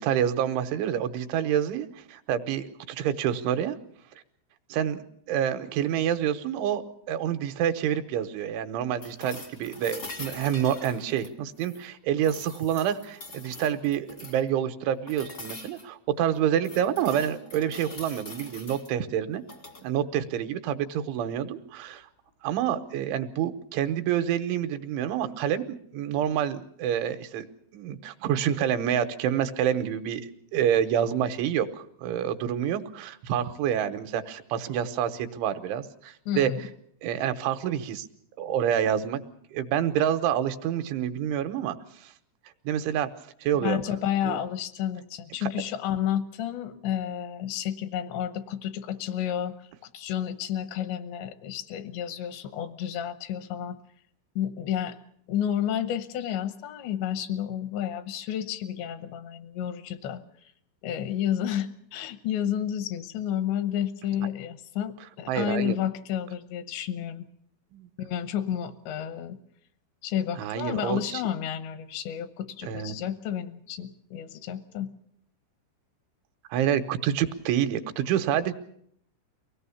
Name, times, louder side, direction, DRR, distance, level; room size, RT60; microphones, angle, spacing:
voice 1, 0.0-3.8 4.7-5.0 5.3-19.4 19.8-22.0 22.4-25.6 25.9-27.5 27.7-31.7 32.0-36.5 37.0-38.1 38.4-39.2 39.5-41.8 42.0-42.1 42.7-43.1 43.4-43.8 44.2-44.4 45.4-45.5 65.3-65.8 67.7-67.9 70.4-71.2 72.7-73.0 76.5-78.5, right 9 dB, 85° right, 9 dB, 3.4 m, -27 dB
sound 1, 9.0-11.8 12.2-14.5 15.1-15.9 16.3-18.9 19.4-19.8 21.9-22.0, left 2 dB, 50° left, 0.8 m, -43 dB
voice 2, 36.3-36.6 43.6-49.5 49.9-53.8 54.4-55.0 55.3-60.2 60.8-67.3 68.0-69.4 70.0-74.9, left 10 dB, 80° left, 11 dB, 3.2 m, -31 dB
24.0 x 17.5 x 7.1 m, 0.68 s
omnidirectional pair, 5.3 m